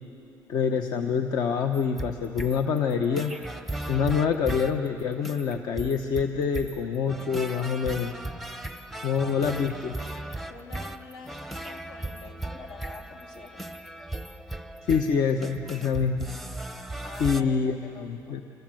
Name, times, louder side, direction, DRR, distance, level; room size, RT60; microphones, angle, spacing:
voice 1, 0.5-3.3 3.9-8.1 9.0-9.9 14.9-16.3 17.2-18.4, left 6 dB, 55° left, 6 dB, 1.1 m, -26 dB
sound 1, 1.7-17.4, right 2 dB, ahead, 0.8 m, -37 dB
voice 2, 10.5-13.7 17.0-18.4, left 4 dB, 75° left, 2 dB, 3.1 m, -46 dB
26.5 x 26.5 x 7.8 m, 3.0 s
cardioid pair, 160°, 8 cm